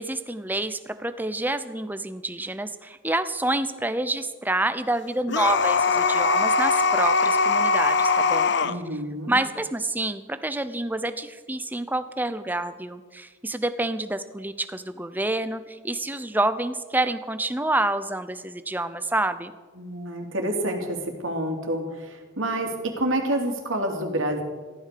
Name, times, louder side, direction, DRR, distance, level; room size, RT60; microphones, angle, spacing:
voice 1, 0.0-8.5 9.3-19.5, right 2 dB, 10° right, 11 dB, 0.7 m, -28 dB
sound 1, 5.3-8.8, left 4 dB, 55° left, 0.7 m, -21 dB
voice 2, 8.6-9.4 19.7-24.4, right 1 dB, 75° right, 3 dB, 3.1 m, -28 dB
15.0 x 13.0 x 6.8 m, 1.4 s
head